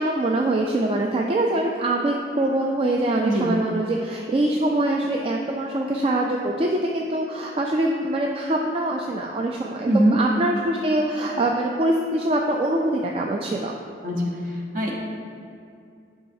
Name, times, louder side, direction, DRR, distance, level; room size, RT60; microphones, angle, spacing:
voice 1, 0.0-13.7, right 1 dB, 30° right, 0 dB, 0.3 m, -24 dB
voice 2, 14.0-14.4 14.7-14.9, right 1 dB, 50° right, -1 dB, 0.9 m, -21 dB
9.3 x 4.8 x 2.7 m, 2.4 s
head